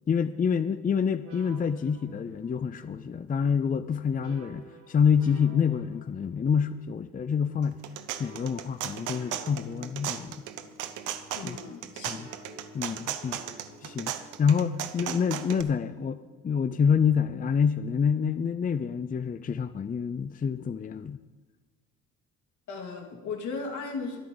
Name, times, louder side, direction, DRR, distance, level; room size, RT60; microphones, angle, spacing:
voice 1, 0.1-7.8 8.2-10.5 11.4-11.6 12.0-12.3 12.7-16.2 16.4-21.2, left 6 dB, 30° left, 12 dB, 0.5 m, -27 dB
sound 1, 1.2-17.4, right 1 dB, 70° right, 3.3 m, -53 dB
sound 2, 7.6-15.6, right 11 dB, 90° right, 0.9 m, -36 dB
voice 2, 11.3-12.1 22.7-24.2, left 4 dB, 75° left, 0 dB, 2.9 m, -36 dB
23.0 x 8.5 x 3.9 m, 1.3 s
cardioid pair, 90°, 30 cm